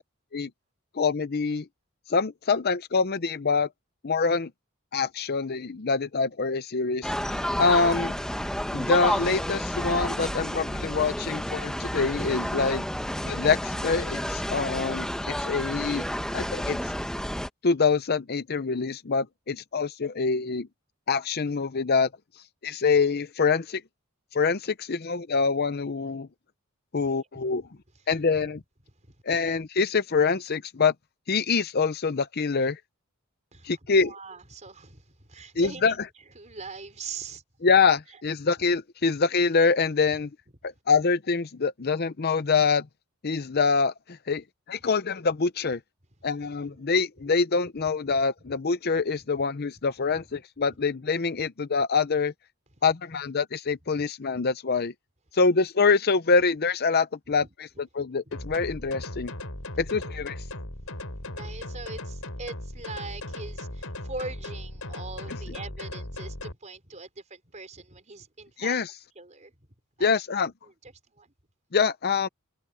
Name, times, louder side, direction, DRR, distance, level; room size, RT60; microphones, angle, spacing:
voice 1, 0.9-1.7 2.1-3.7 4.0-4.5 4.9-8.1 8.7-12.8 13.2-16.1 16.3-16.9 17.6-20.7 21.1-22.1 22.6-23.8 24.3-26.3 26.9-27.6 28.1-28.6 29.3-30.9 31.3-32.8 33.6-34.1 35.6-35.9 37.6-40.3 40.6-42.9 43.2-45.8 46.2-52.3 52.8-54.9 55.3-57.4 57.8-59.3 59.8-60.3 68.6-68.9 70.0-70.5 71.7-72.3, left 4 dB, 45° left, 0.7 m, -25 dB
sound 1, 7.0-17.5, equal, 5° left, 1.0 m, -30 dB
voice 2, 33.5-37.4 38.1-38.2 40.1-40.2 46.4-47.0 48.1-48.6 49.7-49.8 50.1-50.2 51.4-51.5 57.4-57.5 58.0-58.3 60.0-60.1 60.9-68.8 69.1-69.5 70.0-70.2 70.6-71.3, right 3 dB, 35° right, 5.0 m, -42 dB
sound 2, 58.3-66.5, left 1 dB, 70° left, 4.8 m, -37 dB
head